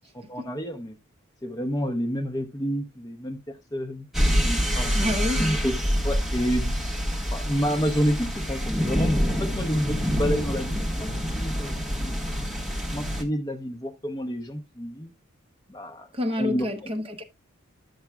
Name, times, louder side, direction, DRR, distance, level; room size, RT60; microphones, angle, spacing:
voice 1, 0.1-1.0 1.4-4.1 4.4-4.9 5.4-5.8 6.0-6.8 7.3-11.1 11.3-12.5 12.9-15.1 15.7-16.1 16.4-16.9, equal, 15° left, 0.7 m, -29 dB
sound 1, 4.1-13.2, equal, ahead, 1.2 m, -26 dB
voice 2, 4.9-5.4 16.1-17.2, left 1 dB, 25° right, 0.9 m, -28 dB
11.5 x 7.1 x 2.2 m
head